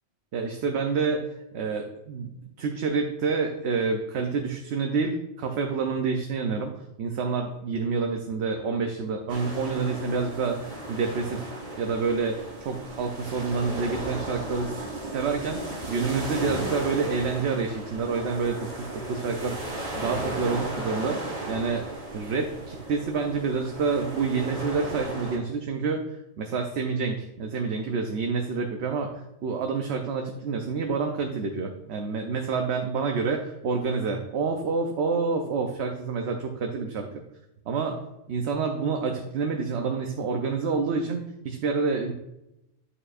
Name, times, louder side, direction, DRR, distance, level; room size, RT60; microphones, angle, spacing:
voice 1, 0.3-1.3 1.5-2.3 2.6-6.7 7.0-11.5 11.8-14.8 15.1-21.8 22.1-26.0 26.4-37.1 37.7-38.0 38.3-42.1, right 4 dB, 65° right, 3 dB, 0.9 m, -28 dB
sound 1, 9.3-25.4, right 1 dB, 35° right, 1.6 m, -35 dB
9.0 x 6.6 x 2.4 m, 0.90 s
omnidirectional pair, 1.3 m